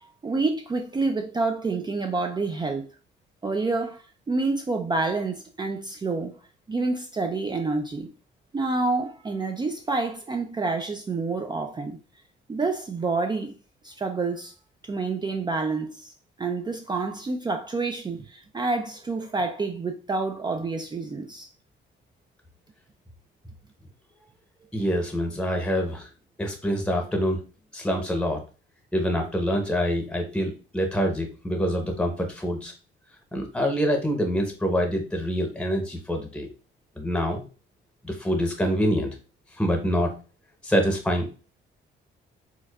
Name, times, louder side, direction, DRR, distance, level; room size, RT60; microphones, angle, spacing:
voice 1, 0.2-2.9 3.4-6.4 6.7-8.1 8.5-12.0 12.5-13.5 13.8-14.5 14.8-16.1 16.4-21.5, right 3 dB, 20° right, 0.4 m, -28 dB
voice 2, 24.7-26.1 26.4-27.4 27.7-28.4 28.9-32.7 33.3-36.5 37.0-37.4 38.0-39.1 39.5-40.2 40.6-41.3, equal, 5° left, 0.8 m, -25 dB
4.5 x 2.3 x 2.3 m
cardioid pair, 90°, 20 cm